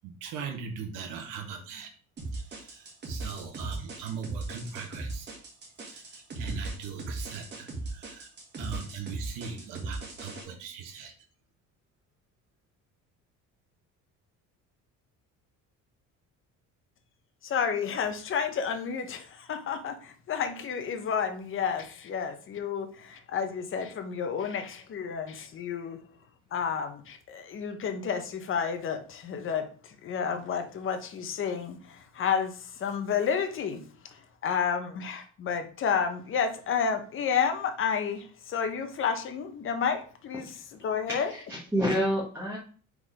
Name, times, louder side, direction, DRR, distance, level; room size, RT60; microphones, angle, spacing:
voice 1, 0.0-1.9 2.3-5.3 5.8-8.3 8.6-11.1, right 6 dB, 80° right, 1.5 m, -40 dB
sound 1, 2.2-10.4, right 2 dB, 35° right, 1.9 m, -38 dB
voice 2, 17.4-26.0 26.5-33.8 34.1-40.5 40.8-41.3, left 6 dB, 40° left, 1.0 m, -31 dB
voice 3, 41.1-42.6, equal, 5° right, 1.3 m, -29 dB
4.9 x 4.0 x 4.9 m
cardioid pair, 145°, 31 cm